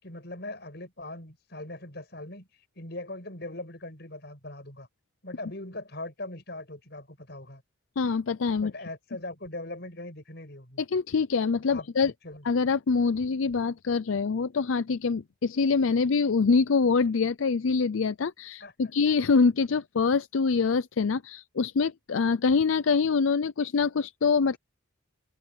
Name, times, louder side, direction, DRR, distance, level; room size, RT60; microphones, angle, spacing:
voice 1, 0.0-2.5 2.8-4.9 5.2-7.6 8.6-10.8 11.7-12.4 18.6-18.7, left 2 dB, 55° left, 6.4 m, -40 dB
voice 2, 8.0-8.7 10.8-12.1 12.4-24.6, left 5 dB, 80° left, 0.5 m, -25 dB
head